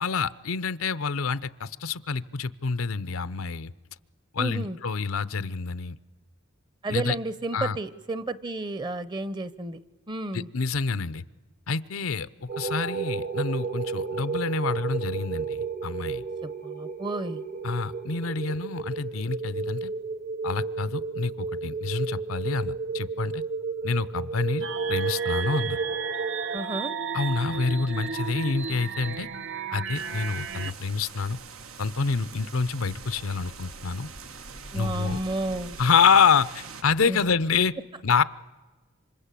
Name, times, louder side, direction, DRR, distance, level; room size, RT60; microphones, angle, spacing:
voice 1, 0.0-3.7 4.3-5.9 6.9-7.2 7.5-7.8 10.3-11.2 11.7-16.2 17.6-19.9 20.4-23.4 23.8-25.8 27.1-29.3 29.7-31.4 31.8-34.1 34.7-35.2 35.8-37.7 38.0-38.2, left 5 dB, 85° left, 15 dB, 0.8 m, -27 dB
voice 2, 4.4-4.8 6.8-9.8 10.1-10.5 16.4-17.4 26.5-26.9 34.7-35.8 37.1-37.2, right 2 dB, 20° right, 15 dB, 0.8 m, -32 dB
sound 1, 12.5-26.6, right 4 dB, 45° right, 1.2 m, -32 dB
sound 2, 24.6-30.7, right 5 dB, 60° right, 1.0 m, -33 dB
sound 3, 29.9-36.8, right 5 dB, 90° right, 1.4 m, -43 dB
27.0 x 25.5 x 8.4 m, 1.3 s
head